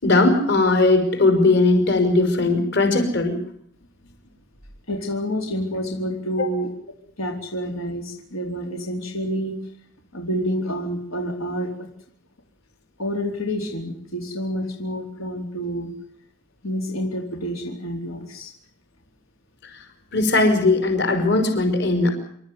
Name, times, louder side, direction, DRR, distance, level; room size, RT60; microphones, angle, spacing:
voice 1, 0.0-3.4 6.4-6.5 20.1-22.1, left 2 dB, 55° left, 6 dB, 5.6 m, -18 dB
voice 2, 4.9-6.7 7.2-9.6 10.1-11.9 13.0-16.0 16.6-18.5, equal, 85° left, 2 dB, 4.2 m, -28 dB
28.0 x 13.5 x 9.7 m, 0.69 s
head